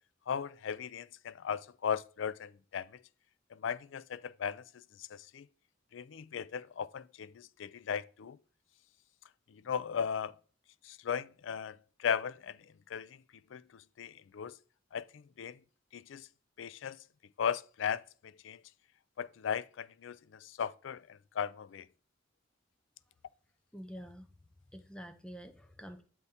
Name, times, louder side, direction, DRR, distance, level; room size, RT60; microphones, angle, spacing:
voice 1, 0.3-3.0 3.5-5.5 5.9-8.4 9.5-10.3 10.8-12.6 12.9-13.1 13.5-14.5 14.9-15.6 15.9-16.3 16.6-17.0 17.4-18.0 18.4-18.6 19.2-21.9, left 7 dB, 70° left, 0.4 m, -37 dB
voice 2, 23.7-24.3 24.7-26.0, equal, 5° left, 0.5 m, -47 dB
8.1 x 3.6 x 4.2 m
head